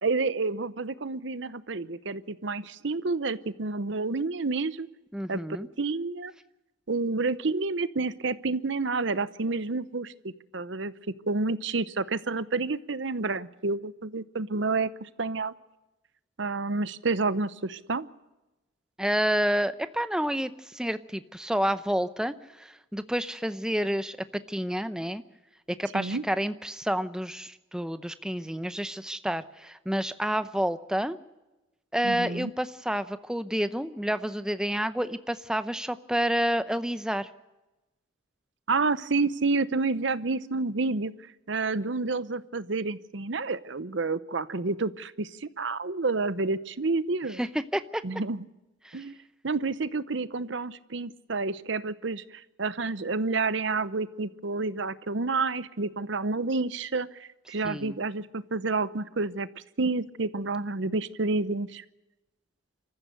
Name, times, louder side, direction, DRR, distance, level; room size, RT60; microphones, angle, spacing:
voice 1, 0.0-4.9 5.3-6.3 6.9-10.1 10.5-10.9 11.3-15.5 16.4-18.1 25.9-26.2 32.0-32.5 38.7-41.1 41.5-47.4 48.0-48.4 48.9-49.2 49.4-59.5 59.8-61.8, right 3 dB, 65° right, 15 dB, 0.8 m, -29 dB
voice 2, 5.1-5.7 19.0-24.2 24.5-25.2 25.8-31.2 31.9-37.3 47.4-48.0 48.8-49.0 57.6-58.0, equal, 5° right, 11 dB, 0.7 m, -29 dB
26.5 x 14.5 x 6.7 m, 1.0 s
head